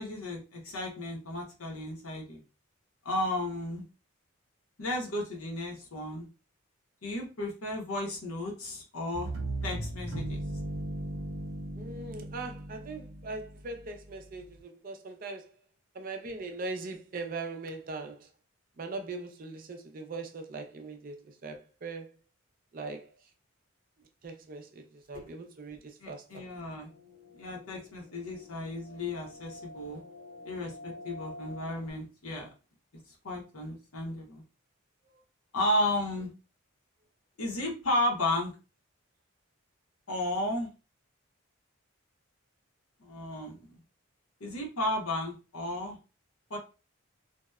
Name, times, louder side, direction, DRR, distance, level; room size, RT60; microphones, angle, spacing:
voice 1, 0.0-2.4 3.0-3.8 4.8-6.3 7.0-9.3 9.6-10.4 25.1-25.3 26.0-26.9 27.3-30.0 30.4-32.5 33.2-34.4 35.5-36.3 37.4-38.5 40.1-40.7 43.0-43.6 44.4-46.0 46.5-46.6, left 1 dB, 80° left, 0.8 m, -33 dB
sound 1, 9.1-14.0, right 1 dB, 85° right, 0.7 m, -37 dB
voice 2, 11.8-15.5 15.9-18.3 18.8-22.1 22.7-23.1 24.2-26.5, right 3 dB, 40° right, 0.4 m, -40 dB
sound 2, 26.7-31.9, left 2 dB, 35° left, 0.4 m, -48 dB
2.7 x 2.1 x 2.3 m
head